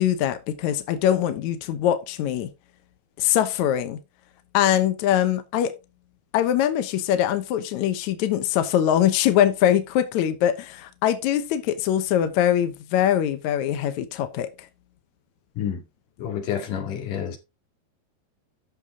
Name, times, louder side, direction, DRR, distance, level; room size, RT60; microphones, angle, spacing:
voice 1, 0.0-2.5 3.2-4.0 4.5-5.7 6.3-14.5, left 11 dB, 75° left, 1.7 m, -22 dB
voice 2, 16.2-17.4, left 8 dB, 55° left, 3.5 m, -29 dB
11.5 x 6.8 x 3.7 m
omnidirectional pair, 4.7 m